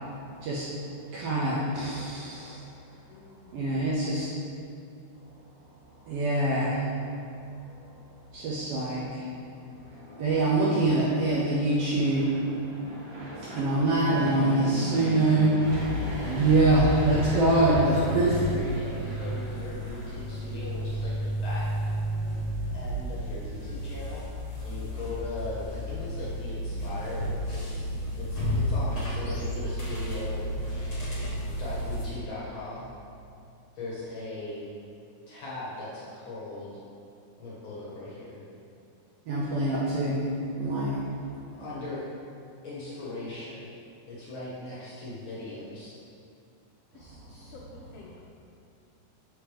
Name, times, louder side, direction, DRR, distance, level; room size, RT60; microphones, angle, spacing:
voice 1, 0.4-0.7 1.1-2.6 3.5-4.3 6.1-6.9 8.3-9.3 10.2-12.4 13.4-16.0 16.2-18.3 39.3-40.2 40.6-41.0, right 2 dB, 75° right, -7 dB, 1.4 m, -25 dB
voice 2, 3.1-3.6 26.9-27.3 46.9-48.2, left 3 dB, 90° left, -3 dB, 1.3 m, -51 dB
Fixed-wing aircraft airplane, 9.6-20.7, equal, 60° right, 2.1 m, -38 dB
sound 1, 15.6-32.1, equal, 40° left, 1.1 m, -32 dB
voice 3, 16.8-21.6 22.7-24.2 24.6-27.8 28.1-30.4 31.6-32.8 33.7-34.6 35.3-36.8 37.4-38.4 39.6-39.8 41.6-42.0 42.6-43.6 44.1-46.0, left 2 dB, 60° left, -7 dB, 1.3 m, -38 dB
6.5 x 4.8 x 3.4 m, 2.5 s
omnidirectional pair, 3.4 m